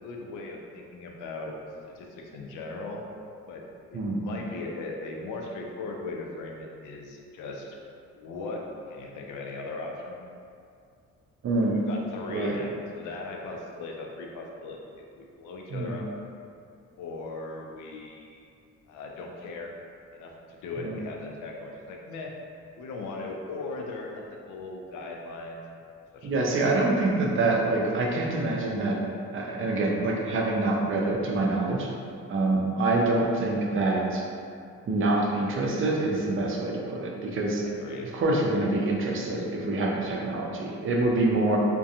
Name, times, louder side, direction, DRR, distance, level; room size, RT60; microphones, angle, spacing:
voice 1, 0.0-1.5 2.0-3.0 3.5-3.6 3.9-7.8 8.1-10.2 11.9-16.1 17.0-18.5 18.9-19.7 20.1-22.3 22.8-25.6 26.1-26.4 27.0-27.1 37.6-38.1 41.4-41.6, left 3 dB, 85° left, 0 dB, 0.5 m, -38 dB
voice 2, 3.9-4.2 11.4-11.8 12.3-12.6 15.7-16.0 20.8-21.0 26.2-29.0 29.3-31.9 32.3-34.3 34.9-37.7 38.1-41.6, right 2 dB, 45° right, -1 dB, 0.5 m, -26 dB
2.4 x 2.2 x 2.7 m, 2.4 s
cardioid pair, 90°, 30 cm